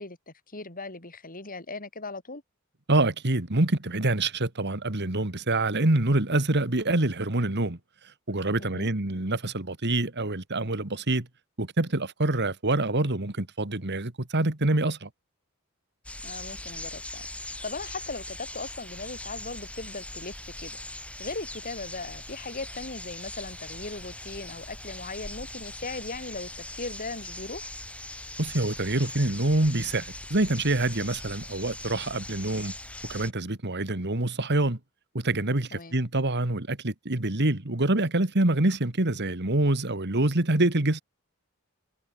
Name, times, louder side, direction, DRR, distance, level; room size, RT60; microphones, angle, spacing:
voice 1, 0.0-2.4 8.6-8.9 16.2-20.8 21.2-27.7 35.7-36.0, left 3 dB, 40° left, 5.6 m, -38 dB
voice 2, 2.9-7.8 8.3-11.3 11.6-15.1 28.4-32.7 33.1-34.8 35.1-41.0, right 2 dB, 50° right, 2.2 m, -26 dB
sound 1, 16.0-33.3, left 1 dB, 5° left, 5.9 m, -40 dB
head